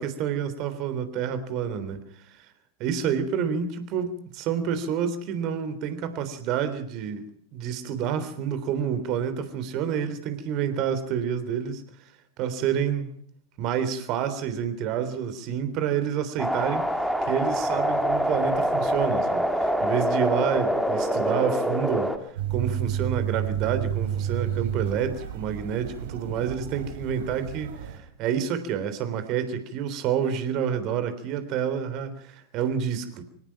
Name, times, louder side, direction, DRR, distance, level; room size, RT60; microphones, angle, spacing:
voice 1, 0.0-2.5 2.8-12.1 12.4-13.1 13.6-33.2, right 8 dB, 40° right, 3.5 m, -29 dB
sound 1, 16.4-22.2, equal, ahead, 2.3 m, -25 dB
sound 2, 22.4-28.0, right 9 dB, 60° right, 3.8 m, -31 dB
25.0 x 18.5 x 5.9 m
figure-of-eight pair, 90°, 0 cm